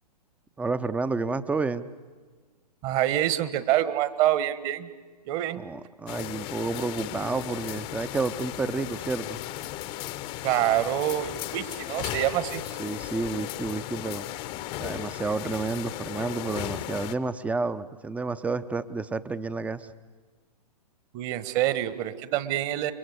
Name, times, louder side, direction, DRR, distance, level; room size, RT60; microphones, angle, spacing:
voice 1, 0.6-1.9 5.5-9.4 12.8-14.3 14.8-19.9, right 3 dB, 5° right, 13 dB, 0.7 m, -30 dB
voice 2, 2.8-4.9 5.2-5.6 10.4-12.6 21.1-22.9, right 13 dB, 30° right, 13 dB, 1.4 m, -26 dB
sound 1, 6.1-17.2, left 14 dB, 30° left, 0.9 m, -36 dB
29.5 x 23.0 x 8.1 m, 1.4 s
figure-of-eight pair, 115°, 21 cm